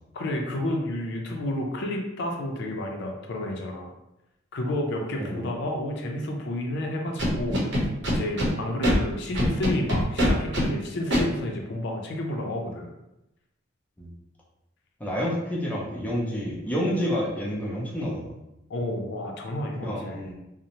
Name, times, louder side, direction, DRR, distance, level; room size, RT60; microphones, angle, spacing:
voice 1, 0.1-3.9 4.5-7.8 8.0-12.9 18.7-20.2, left 1 dB, 65° left, 1 dB, 0.4 m, -30 dB
voice 2, 5.1-5.5 14.0-14.1 15.0-18.3 19.8-20.3, equal, 10° left, -5 dB, 0.5 m, -29 dB
Scratching (performance technique), 7.2-8.5 8.8-8.9 9.3-10.6 11.1-11.2, equal, 65° right, 0.8 m, -23 dB
2.6 x 2.0 x 2.9 m, 0.90 s
head